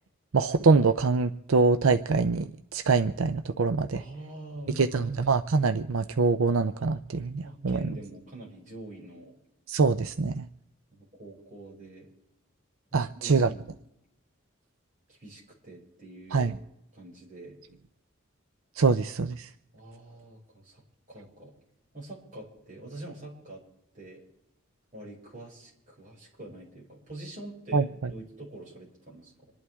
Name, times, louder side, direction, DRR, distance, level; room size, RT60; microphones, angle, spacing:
voice 1, 0.3-4.0 4.7-8.0 9.7-10.5 12.9-13.5 16.3-16.6 18.8-19.5 27.7-27.9, right 4 dB, 75° right, 9 dB, 0.6 m, -24 dB
voice 2, 3.9-5.2 7.4-9.3 10.9-12.1 13.1-13.8 15.1-16.6 16.9-17.6 19.7-20.8 21.1-21.5 21.9-23.6 23.9-24.2 24.9-29.5, right 1 dB, 35° right, -4 dB, 6.3 m, -45 dB
27.0 x 11.5 x 3.6 m, 0.83 s
head